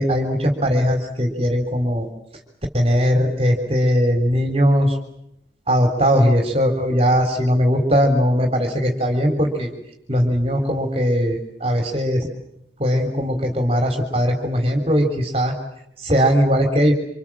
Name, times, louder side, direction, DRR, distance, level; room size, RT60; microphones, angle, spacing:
voice 1, 0.0-2.1 2.7-5.0 5.7-9.7 10.1-12.3 12.8-15.5 16.0-16.9, equal, 30° right, 4 dB, 3.7 m, -19 dB
27.5 x 27.0 x 7.4 m, 0.77 s
head